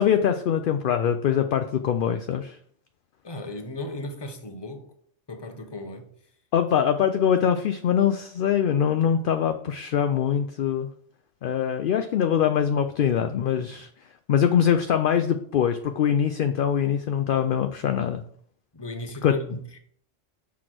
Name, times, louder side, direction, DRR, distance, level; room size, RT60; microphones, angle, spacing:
voice 1, 0.0-2.6 6.5-10.9 11.4-13.9 14.3-18.2 19.2-19.3, left 8 dB, 60° left, 0.5 m, -23 dB
voice 2, 3.2-4.9 5.3-6.0 13.5-13.8 18.7-19.8, left 1 dB, 25° left, 0.8 m, -36 dB
6.2 x 4.7 x 6.1 m
omnidirectional pair, 1.3 m